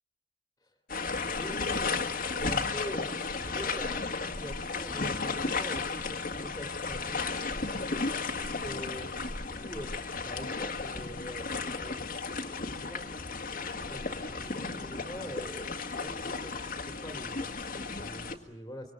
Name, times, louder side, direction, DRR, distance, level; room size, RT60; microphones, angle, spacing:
sound 1, 0.9-18.4, left 4 dB, 50° left, 1.9 m, -34 dB
voice 1, 1.4-18.9, equal, 15° left, 4 dB, 2.6 m, -45 dB
26.0 x 24.0 x 7.7 m, 0.73 s
head